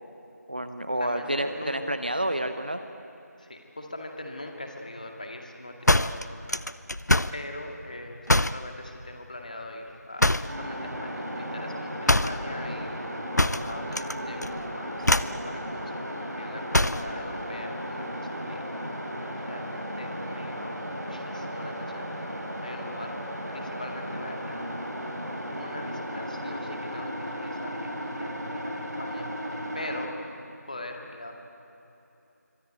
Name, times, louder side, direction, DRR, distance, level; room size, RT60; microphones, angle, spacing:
voice 1, 0.5-2.8, right 1 dB, 30° right, 9 dB, 0.9 m, -29 dB
voice 2, 1.0-1.8 3.4-6.7 7.3-8.3 8.5-18.6 19.3-24.9 25.5-31.3, left 1 dB, 25° left, 2 dB, 2.2 m, -42 dB
sound 1, 5.9-7.4 8.3-8.7 10.2-10.6 12.1-12.4 13.4-14.1 14.4-14.7 15.0-15.4 16.7-17.1, left 1 dB, 70° left, 0.8 m, -23 dB
sound 2, 10.5-30.1, equal, 70° right, 5.9 m, -35 dB
25.5 x 25.0 x 9.2 m, 2.9 s
figure-of-eight pair, 170°, 9 cm